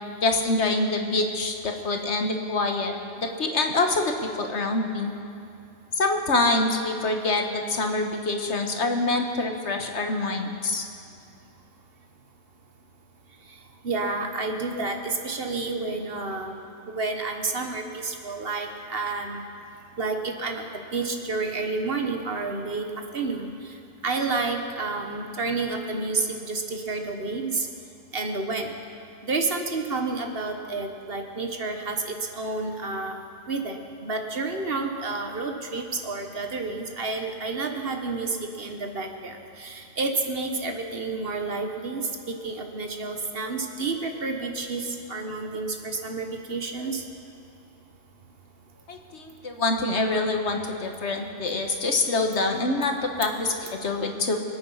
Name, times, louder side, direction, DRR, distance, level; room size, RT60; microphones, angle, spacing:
voice 1, 0.2-5.1 6.0-10.8 48.9-54.4, left 2 dB, 70° left, 4 dB, 1.6 m, -26 dB
voice 2, 13.8-16.5 16.9-19.4 20.0-20.7 20.9-22.8 23.1-23.5 24.0-27.7 28.1-28.7 29.2-33.2 33.5-47.0, right 3 dB, 55° right, 4 dB, 1.4 m, -30 dB
25.0 x 8.8 x 5.6 m, 2.6 s
omnidirectional pair, 1.2 m